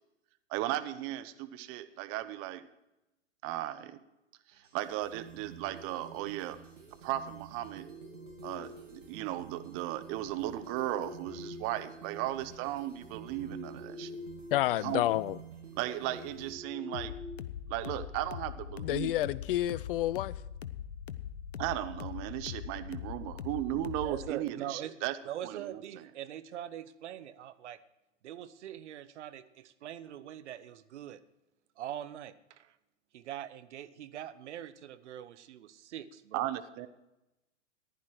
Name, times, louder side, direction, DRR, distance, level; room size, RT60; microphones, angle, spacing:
voice 1, 0.5-2.6 3.4-4.0 4.6-6.6 7.0-7.9 8.4-14.1 14.8-15.0 15.8-17.1 17.7-19.3 21.6-25.2 25.4-26.1 36.3-36.9, right 14 dB, 35° right, 0.9 m, -36 dB
sound 1, 4.5-16.5, right 7 dB, 85° right, 3.3 m, -50 dB
sound 2, 7.6-9.1 10.1-12.2 12.7-14.6 14.9-15.1 15.6-18.0, left 3 dB, 10° left, 5.8 m, -48 dB
voice 2, 14.5-15.4 18.8-20.4, left 14 dB, 50° left, 0.5 m, -29 dB
sound 3, 16.9-24.3, left 9 dB, 80° left, 0.8 m, -42 dB
voice 3, 24.0-24.9 25.3-27.8 28.2-31.2 31.8-32.8 33.1-36.5, right 11 dB, 65° right, 1.0 m, -42 dB
15.0 x 11.0 x 4.7 m
hypercardioid pair, 110°, 37 cm